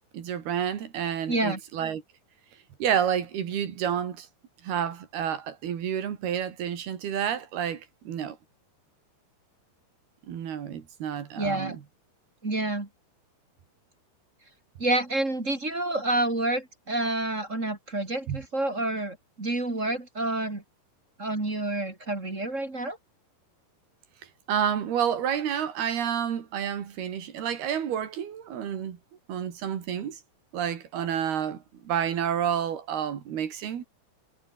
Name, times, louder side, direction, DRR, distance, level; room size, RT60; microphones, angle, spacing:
voice 1, 0.1-2.0 2.8-4.3 4.6-8.4 10.3-11.8 18.3-18.4 24.5-29.0 29.3-30.2 30.5-33.8, right 9 dB, 70° right, 4.5 m, -29 dB
voice 2, 1.3-1.6 11.4-11.7 12.4-12.9 14.8-20.6 21.2-23.0, right 2 dB, 20° right, 3.1 m, -28 dB
omnidirectional pair, 4.8 m